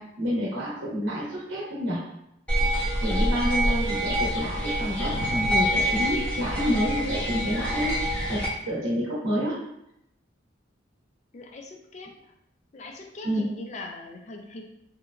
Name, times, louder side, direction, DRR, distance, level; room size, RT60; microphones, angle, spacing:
voice 1, 0.0-2.0 3.0-9.6 13.2-13.5, equal, 80° right, -6 dB, 0.7 m, -29 dB
sound 1, 2.5-8.5, equal, 5° left, 0.7 m, -26 dB
voice 2, 11.3-12.1 12.7-14.6, left 2 dB, 35° left, 2 dB, 0.3 m, -40 dB
2.9 x 2.2 x 2.4 m, 0.80 s
head